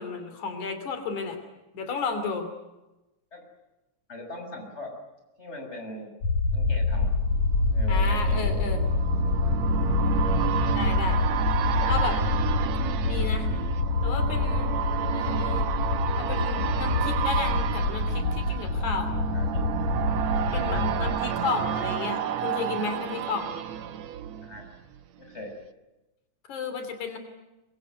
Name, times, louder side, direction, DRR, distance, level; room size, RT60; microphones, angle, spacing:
voice 1, 0.0-1.4 1.7-2.5 7.9-8.8 10.7-11.2 11.9-12.2 13.0-13.5 14.0-14.7 15.1-15.7 16.2-19.1 20.5-23.5 26.5-27.2, left 4 dB, 85° left, 7 dB, 4.4 m, -32 dB
voice 2, 4.1-4.9 5.4-6.1 6.5-7.1 7.7-8.7 9.2-9.7 10.4-10.8 11.6-12.2 15.2-15.4 19.3-19.6 20.6-21.1 24.4-24.7 25.2-25.5, equal, 20° left, 3 dB, 6.6 m, -40 dB
sound 1, 6.2-21.1, left 3 dB, 65° left, 4.3 m, -26 dB
sound 2, 7.2-25.0 25.4-25.5, right 10 dB, 70° right, 2.3 m, -31 dB
25.0 x 23.0 x 9.4 m, 1.0 s
omnidirectional pair, 3.4 m